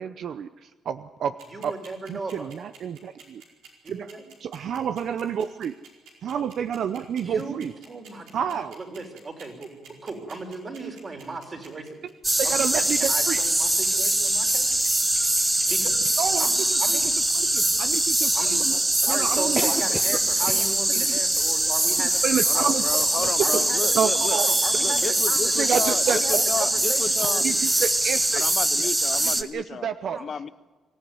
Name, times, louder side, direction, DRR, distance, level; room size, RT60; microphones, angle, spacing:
voice 1, 0.0-1.4 1.6-1.7 2.1-3.4 3.9-4.1 4.4-5.7 6.2-7.7 8.3-8.8 12.4-13.4 16.2-17.0 17.3-18.7 19.1-19.7 20.5-20.6 21.0-21.2 22.2-22.8 23.4-23.5 23.9-24.5 25.6-26.7 27.2-28.5 29.2-30.2, right 8 dB, 65° right, 11 dB, 0.7 m, -29 dB
sound 1, 1.4-16.1, right 7 dB, 90° right, 4.9 m, -48 dB
voice 2, 1.5-2.5 3.8-4.2 7.2-7.6 7.9-11.9 12.4-14.7 15.7-15.9 16.4-16.5 16.8-17.1 18.3-18.8 19.0-22.2 22.5-24.0 24.3-27.6 30.0-30.2, right 3 dB, 35° right, 3 dB, 4.7 m, -36 dB
sound 2, 12.2-29.4, right 1 dB, 15° right, 1.3 m, -23 dB
voice 3, 22.5-24.4 24.8-27.4 28.3-29.9 30.2-30.5, left 6 dB, 45° left, 14 dB, 0.7 m, -32 dB
25.0 x 14.0 x 9.5 m, 1.2 s
cardioid pair, 90°, 0 cm